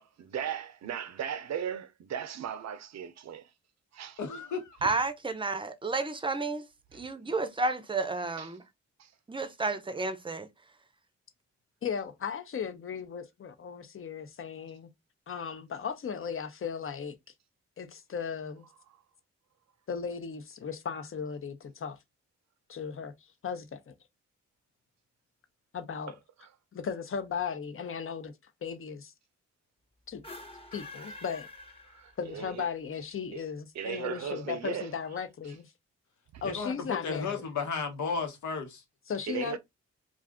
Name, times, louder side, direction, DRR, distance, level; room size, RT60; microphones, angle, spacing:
voice 1, 0.0-3.4 4.0-4.1 6.9-7.0 8.4-8.6 9.0-9.1 26.4-26.5 31.9-32.6 33.3-33.4 33.7-34.9 36.3-36.4 39.3-39.6, right 8 dB, 65° right, 0.6 m, -37 dB
voice 2, 4.2-4.6 36.4-38.8, left 5 dB, 80° left, 1.0 m, -33 dB
voice 3, 4.8-6.7 6.9-8.6 9.3-10.5, right 3 dB, 15° right, 0.6 m, -31 dB
voice 4, 11.8-14.9 15.3-17.1 17.8-18.7 19.9-22.0 22.7-23.1 23.4-23.9 25.7-26.1 26.7-28.3 28.6-29.1 30.1-30.2 30.7-31.5 32.2-35.7 36.4-37.4 39.1-39.6, left 6 dB, 45° left, 0.7 m, -36 dB
sound 1, 30.1-32.5, left 2 dB, 20° left, 1.0 m, -47 dB
2.4 x 2.4 x 3.5 m
cardioid pair, 55°, 29 cm